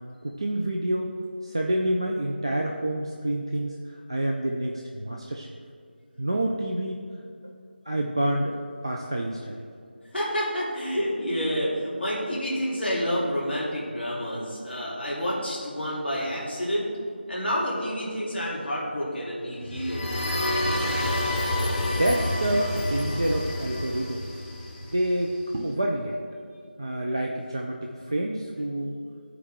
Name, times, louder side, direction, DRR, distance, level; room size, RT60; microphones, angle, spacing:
voice 1, 0.2-1.1 1.4-5.5 6.2-7.0 7.9-8.6 8.8-9.5 21.9-24.3 24.8-26.2 26.8-29.0, right 1 dB, 25° right, 1 dB, 0.3 m, -28 dB
voice 2, 10.1-16.9 17.3-20.1 21.7-21.8, equal, 5° right, -20 dB, 1.8 m, -29 dB
sound 1, 19.6-25.4, left 1 dB, 25° left, 1.2 m, -28 dB
13.5 x 4.7 x 3.6 m, 2.3 s
figure-of-eight pair, 175°, 6 cm